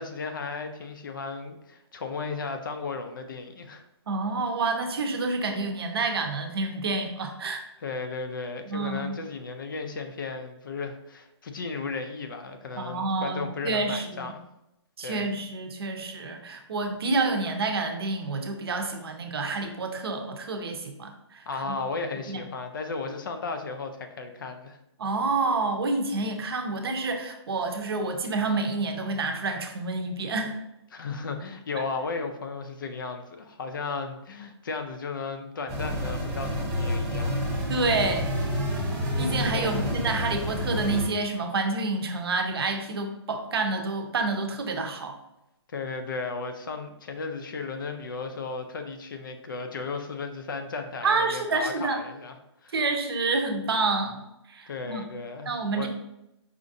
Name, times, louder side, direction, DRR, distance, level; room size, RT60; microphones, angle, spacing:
voice 1, 0.0-3.8 7.8-14.4 15.0-15.3 21.5-24.8 30.9-37.5 39.5-39.9 45.7-52.3 52.6-52.7 54.7-55.9, left 4 dB, 45° left, 6 dB, 0.4 m, -35 dB
voice 2, 4.1-7.6 8.7-9.1 12.7-14.3 15.0-21.4 22.3-22.4 25.0-30.5 31.8-31.9 37.7-38.4 39.2-45.2 51.0-52.0 52.7-54.2 54.5-55.0 55.5-55.9, right 3 dB, 55° right, 5 dB, 0.7 m, -28 dB
sound 1, 35.7-41.1, equal, 10° right, 1.0 m, -29 dB
5.0 x 2.4 x 2.6 m, 0.86 s
hypercardioid pair, 170°, 15 cm